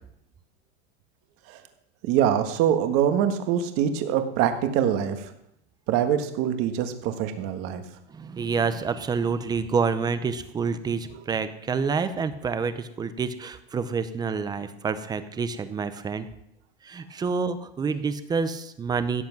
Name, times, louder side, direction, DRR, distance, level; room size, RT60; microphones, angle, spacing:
voice 1, 2.0-5.3 5.9-7.8, right 9 dB, 40° right, 8 dB, 1.6 m, -24 dB
voice 2, 8.1-16.3 16.8-19.2, right 5 dB, 10° right, 12 dB, 0.6 m, -28 dB
16.5 x 7.9 x 6.0 m, 0.79 s
supercardioid pair, 155°, 33 cm